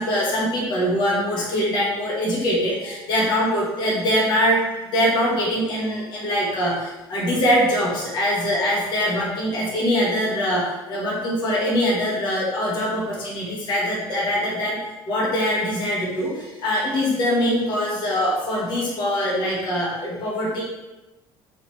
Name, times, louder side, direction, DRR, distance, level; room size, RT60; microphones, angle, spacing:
voice 1, 0.0-14.8 15.1-20.6, equal, 50° left, -5 dB, 1.3 m, -23 dB
4.1 x 3.1 x 4.0 m, 1.1 s
cardioid pair, 140°, 10 cm